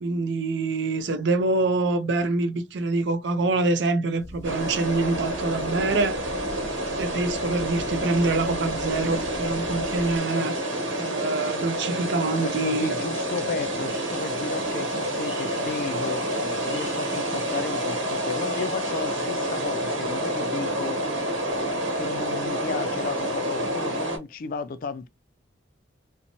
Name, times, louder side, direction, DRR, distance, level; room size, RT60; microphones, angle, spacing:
voice 1, 0.0-6.2 7.0-10.6 11.0-13.0, right 3 dB, 60° right, 0.5 m, -25 dB
sound 1, 4.2-10.2, equal, 15° left, 0.7 m, -42 dB
sound 2, 4.4-24.2, right 1 dB, 85° right, 0.9 m, -28 dB
voice 2, 12.3-21.0 22.0-25.1, left 5 dB, 45° left, 0.3 m, -34 dB
sound 3, 13.9-20.0, right 2 dB, 20° right, 0.8 m, -47 dB
2.6 x 2.1 x 2.8 m
head